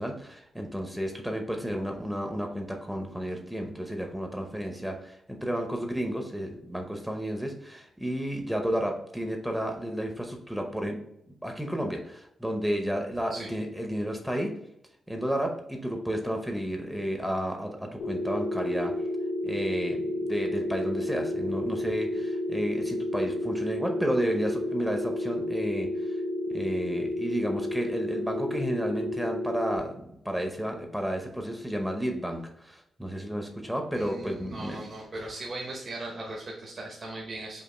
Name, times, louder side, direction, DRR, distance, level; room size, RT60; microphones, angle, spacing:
voice 1, 0.0-11.0 11.4-14.5 15.1-18.9 19.4-26.2 26.5-34.9, equal, 5° right, 3 dB, 0.7 m, -32 dB
sound 1, 18.0-29.8, left 1 dB, 85° left, 1.3 m, -31 dB
voice 2, 33.9-37.6, right 2 dB, 40° right, -2 dB, 0.8 m, -38 dB
5.2 x 2.5 x 3.8 m, 0.76 s
wide cardioid pair, 125°, 0 cm